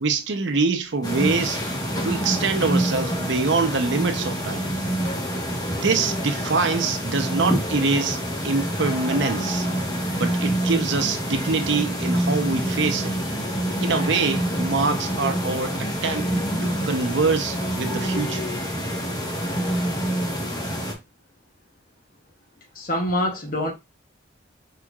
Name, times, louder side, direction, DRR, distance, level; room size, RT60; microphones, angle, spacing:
voice 1, 0.0-1.6 2.0-4.7 5.8-8.2 8.4-9.7 10.2-13.1 13.8-18.4, right 4 dB, 75° right, 0.7 m, -24 dB
sound 1, 1.0-20.9, equal, 20° left, 1.2 m, -26 dB
voice 2, 22.7-23.7, left 1 dB, 45° left, 1.1 m, -25 dB
5.0 x 4.4 x 2.4 m
head